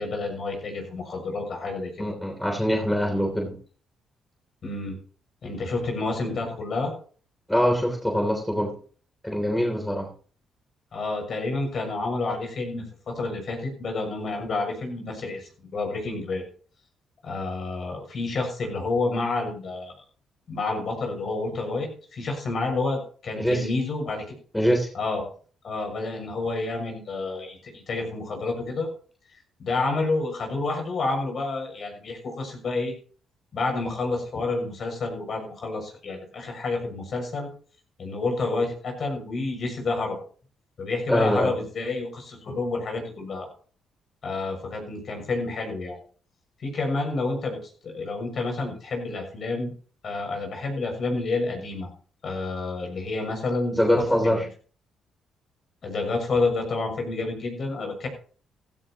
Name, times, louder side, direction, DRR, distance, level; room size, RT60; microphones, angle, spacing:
voice 1, 0.0-2.0 4.6-5.0 5.4-6.9 10.9-16.4 17.2-19.9 20.5-24.2 24.9-25.2 25.6-28.9 29.6-32.9 33.5-37.5 38.0-40.2 40.8-43.5 44.2-46.0 46.6-47.6 47.8-49.7 50.0-51.9 52.2-54.3 55.8-58.1, left 3 dB, 50° left, 3 dB, 6.8 m, -29 dB
voice 2, 2.0-3.5 7.5-8.7 9.2-10.1 23.4-23.7 24.5-24.9 41.1-41.5 53.8-54.4, equal, 5° left, 2 dB, 3.3 m, -23 dB
15.5 x 14.5 x 3.0 m, 0.42 s
cardioid pair, 90°, 0 cm